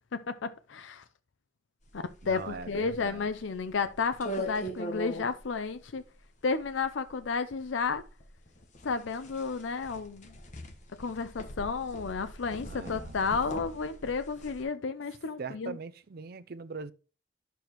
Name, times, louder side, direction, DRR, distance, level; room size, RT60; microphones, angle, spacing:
voice 1, 0.1-1.0 1.9-6.0 6.4-8.0 8.8-10.3 11.0-15.8, left 4 dB, 75° left, 0.5 m, -32 dB
sound 1, 1.9-14.6, equal, 40° left, 1.2 m, -42 dB
voice 2, 2.2-3.3 12.6-13.2 15.4-16.9, right 4 dB, 50° right, 0.5 m, -41 dB
10.5 x 6.9 x 3.0 m
head